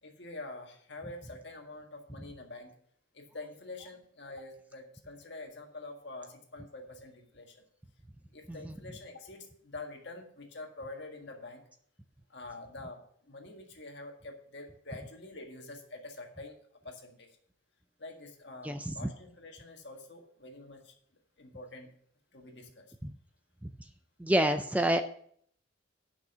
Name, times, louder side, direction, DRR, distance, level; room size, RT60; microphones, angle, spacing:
voice 1, 0.0-2.7 3.1-7.6 8.3-11.6 12.3-16.6 16.8-17.3 18.0-20.9 21.4-21.9 22.3-22.9, left 2 dB, 60° left, 2 dB, 1.7 m, -46 dB
voice 2, 18.6-19.1 23.0-23.1 23.6-23.7 24.2-25.0, right 1 dB, 5° right, 8 dB, 0.3 m, -28 dB
10.5 x 6.1 x 5.6 m, 0.63 s
head